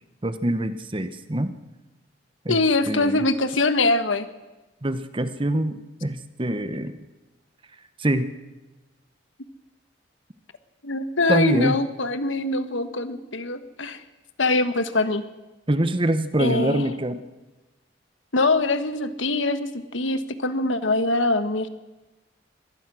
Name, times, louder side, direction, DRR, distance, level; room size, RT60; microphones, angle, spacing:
voice 1, 0.2-1.5 2.4-2.6 2.9-3.2 4.8-7.1 8.0-8.3 11.3-11.8 15.7-17.2, right 1 dB, 25° right, 11 dB, 1.0 m, -24 dB
voice 2, 2.5-4.3 10.8-14.0 14.4-15.2 16.4-16.8 18.3-21.7, left 2 dB, 90° left, 11 dB, 1.5 m, -23 dB
24.5 x 18.5 x 6.3 m, 1.1 s
head